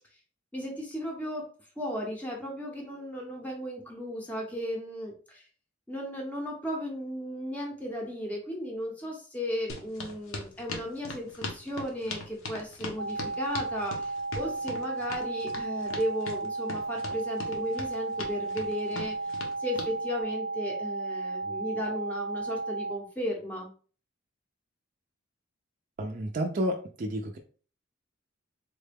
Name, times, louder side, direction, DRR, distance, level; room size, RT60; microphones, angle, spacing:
voice 1, 0.5-1.5 1.8-5.5 5.9-19.3 19.6-23.7, equal, 10° left, -1 dB, 0.6 m, -35 dB
sound 1, 9.7-19.9, left 3 dB, 85° left, 0.8 m, -39 dB
sound 2, 13.0-23.0, right 3 dB, 50° left, 0.7 m, -34 dB
voice 2, 26.0-27.4, right 1 dB, 40° right, 2 dB, 0.4 m, -31 dB
3.7 x 2.2 x 3.3 m, 0.40 s
head